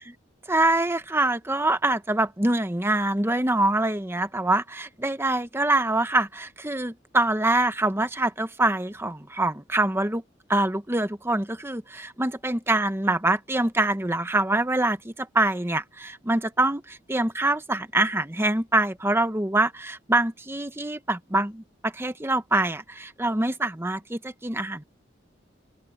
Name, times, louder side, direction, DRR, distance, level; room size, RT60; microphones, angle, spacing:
voice 1, 0.5-10.2 10.5-24.8, right 2 dB, 15° right, 1.0 m, -25 dB
open air
head